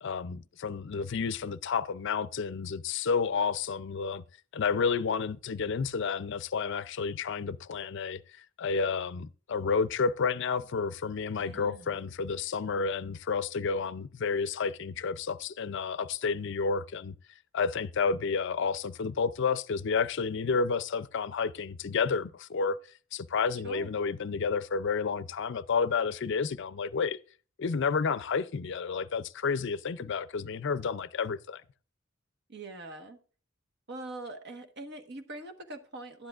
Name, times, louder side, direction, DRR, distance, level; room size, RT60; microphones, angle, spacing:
voice 1, 0.0-4.2 4.5-17.1 17.5-22.8 23.1-27.2 27.6-31.6, left 5 dB, 55° left, 0.5 m, -30 dB
voice 2, 11.4-11.9 23.6-23.9 32.5-33.2 33.9-36.3, right 2 dB, 55° right, 1.3 m, -43 dB
12.0 x 10.5 x 2.4 m
head